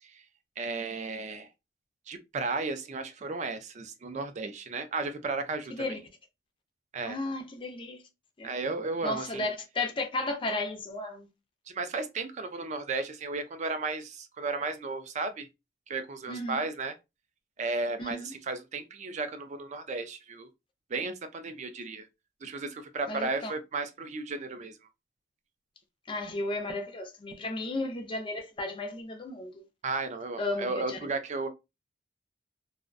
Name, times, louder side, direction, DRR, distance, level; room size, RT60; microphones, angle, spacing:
voice 1, 0.6-1.5 2.1-6.0 6.9-7.2 8.4-9.5 11.7-15.5 15.9-16.9 17.6-20.5 20.9-22.1 22.4-24.8 29.8-31.5, right 3 dB, 40° right, 0.4 m, -34 dB
voice 2, 7.1-8.0 8.4-8.5 9.0-11.3 16.3-16.6 18.0-18.3 23.1-23.5 26.1-29.7 30.4-31.0, left 2 dB, 25° left, 0.4 m, -34 dB
2.5 x 2.1 x 2.4 m
head